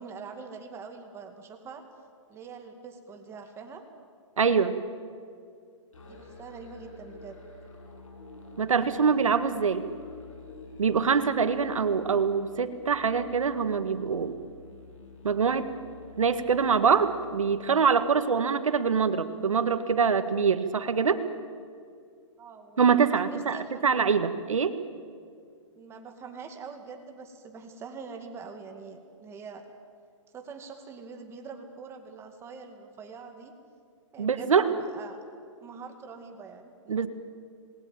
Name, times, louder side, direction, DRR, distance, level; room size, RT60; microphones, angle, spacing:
voice 1, 0.0-1.8 2.3-3.8 6.0-7.4 22.4-23.9 25.8-29.7 30.3-33.5 34.1-35.2 35.6-37.1, right 5 dB, 15° right, 5 dB, 2.2 m, -44 dB
voice 2, 4.4-4.8 8.6-9.9 10.8-14.3 15.2-15.7 16.2-21.2 22.8-23.6 23.8-24.8 34.2-34.7 36.9-37.1, right 6 dB, 90° right, 10 dB, 1.9 m, -24 dB
Musical instrument, 5.9-17.5, left 3 dB, 85° left, 7.7 m, -48 dB
27.0 x 20.5 x 9.1 m, 2.2 s
hypercardioid pair, 150°, 16 cm